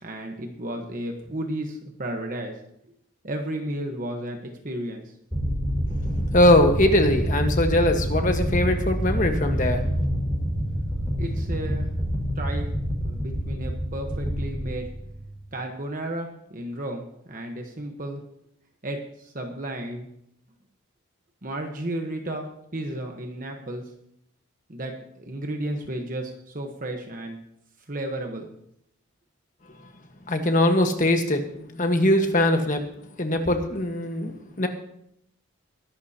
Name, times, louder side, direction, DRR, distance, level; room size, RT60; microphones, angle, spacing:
voice 1, 0.0-2.5 3.2-4.4 4.6-5.0 11.2-11.9 12.4-12.7 13.0-14.9 15.5-18.2 18.8-20.1 21.4-22.4 22.7-23.8 24.7-27.4 27.9-28.5, right 1 dB, 40° right, 3 dB, 1.1 m, -33 dB
sound 1, 5.3-15.4, equal, ahead, 4.7 m, -27 dB
voice 2, 6.3-9.8 30.3-31.4 31.7-32.8 33.2-34.7, left 1 dB, 35° left, 5 dB, 1.4 m, -21 dB
21.0 x 11.5 x 2.9 m, 0.74 s
head